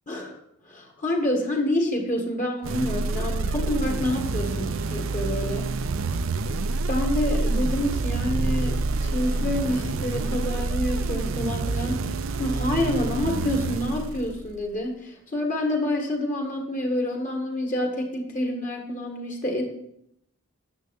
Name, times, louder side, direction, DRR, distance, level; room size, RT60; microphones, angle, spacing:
voice 1, 0.1-0.4 0.6-5.7 6.5-12.0 12.4-19.6, left 1 dB, 35° left, 1 dB, 1.7 m, -28 dB
sound 1, 2.6-14.6, right 3 dB, 65° right, 0.5 m, -27 dB
9.9 x 6.9 x 5.3 m, 0.75 s
head